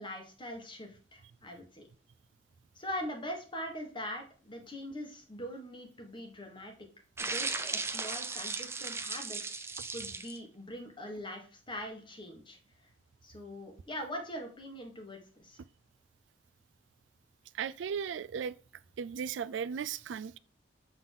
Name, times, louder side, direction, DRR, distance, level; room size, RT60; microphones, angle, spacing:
voice 1, 0.0-1.8 2.7-6.7 7.2-12.6 13.2-15.6, equal, 25° left, 1.5 m, -42 dB
sound 1, 7.2-10.4, right 4 dB, 15° right, 0.5 m, -36 dB
voice 2, 17.5-18.5 19.0-20.4, right 7 dB, 75° right, 0.3 m, -36 dB
7.3 x 4.0 x 3.7 m
head